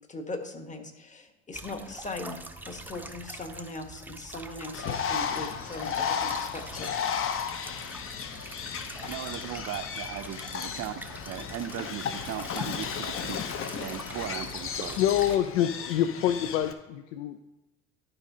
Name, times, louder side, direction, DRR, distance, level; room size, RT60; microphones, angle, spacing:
voice 1, 0.1-2.4 2.7-6.9, left 2 dB, 20° left, 5 dB, 1.2 m, -39 dB
sound 1, 1.5-15.4, right 1 dB, 5° right, 0.6 m, -44 dB
Bird, 4.7-16.7, left 7 dB, 35° left, 0.8 m, -34 dB
voice 2, 9.0-10.9 11.3-15.0, right 12 dB, 45° right, 7 dB, 0.6 m, -38 dB
voice 3, 15.0-17.4, left 11 dB, 70° left, 9 dB, 0.5 m, -26 dB
12.0 x 5.1 x 2.8 m, 1.1 s
hypercardioid pair, 65°, 36 cm